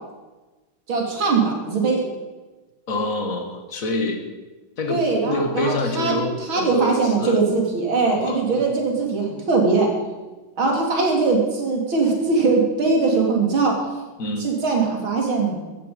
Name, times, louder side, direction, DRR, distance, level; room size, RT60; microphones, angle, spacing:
voice 1, 0.9-2.0 4.9-6.2 6.5-9.9 10.6-13.8 14.4-15.6, right 4 dB, 80° right, 0 dB, 3.8 m, -21 dB
voice 2, 2.9-4.2 4.8-7.4 8.2-8.8 14.2-14.5, left 2 dB, 45° left, 5 dB, 2.1 m, -26 dB
15.0 x 13.5 x 5.2 m, 1.2 s
omnidirectional pair, 2.2 m